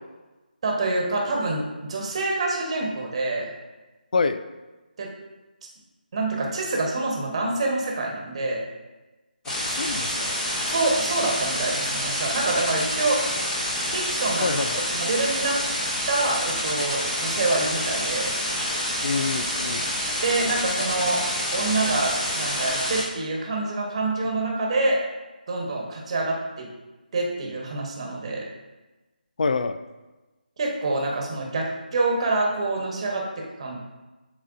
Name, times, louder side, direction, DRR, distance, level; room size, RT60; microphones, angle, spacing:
voice 1, 0.6-3.5 5.0-5.1 6.1-8.6 10.7-13.2 13.9-14.6 14.9-15.6 16.1-18.3 20.2-21.3 21.5-25.0 25.5-26.7 27.1-28.4 30.6-33.8, right 2 dB, 40° right, -1 dB, 1.2 m, -26 dB
sound 1, 9.4-23.0, equal, 5° left, 1.0 m, -27 dB
voice 2, 9.5-10.3 14.4-14.7 19.0-19.9 29.4-29.8, left 4 dB, 55° left, 10 dB, 0.4 m, -26 dB
10.0 x 4.0 x 2.6 m, 1.1 s
figure-of-eight pair, 155°, 5 cm